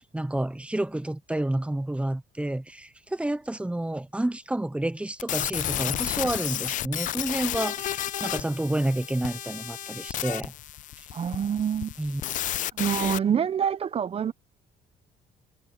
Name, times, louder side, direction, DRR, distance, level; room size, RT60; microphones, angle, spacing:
voice 1, 0.1-10.5 12.0-12.2, right 1 dB, 5° right, 1.0 m, -29 dB
sound 1, 5.2-13.2, left 13 dB, 50° left, 0.4 m, -32 dB
voice 2, 11.1-11.9 12.7-14.3, right 8 dB, 35° right, 0.9 m, -26 dB
cardioid pair, 110°, 17 cm